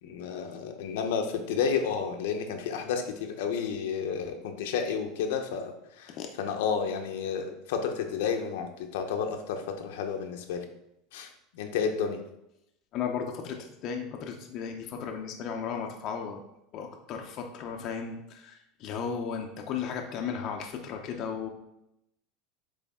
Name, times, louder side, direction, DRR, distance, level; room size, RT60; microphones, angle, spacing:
voice 1, 0.0-10.6 11.1-12.2, left 6 dB, 80° left, 4 dB, 0.9 m, -31 dB
voice 2, 12.9-16.4 16.7-21.5, left 6 dB, 40° left, 3 dB, 0.7 m, -35 dB
8.3 x 3.4 x 3.6 m, 0.84 s
supercardioid pair, 155°, 0 cm